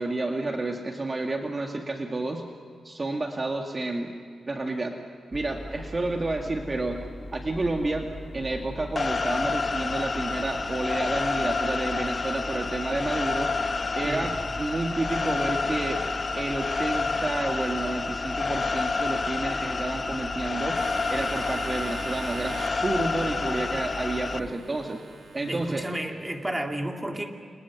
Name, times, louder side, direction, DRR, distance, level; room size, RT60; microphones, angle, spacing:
voice 1, 0.0-2.4 2.8-4.1 4.5-5.0 5.3-7.0 7.3-8.1 8.3-13.5 14.0-16.0 16.3-20.8 21.1-25.1 25.3-25.8, right 2 dB, 30° right, 2 dB, 2.1 m, -30 dB
sound 1, 5.3-24.5, equal, 15° left, 2.3 m, -40 dB
sound 2, 9.0-24.4, left 4 dB, 35° left, 0.7 m, -29 dB
sound 3, 20.7-25.9, right 4 dB, 65° right, 2.8 m, -43 dB
voice 2, 25.5-27.3, right 1 dB, 10° right, 2 dB, 2.6 m, -32 dB
30.0 x 29.0 x 6.1 m, 2.2 s
wide cardioid pair, 120°, 0 cm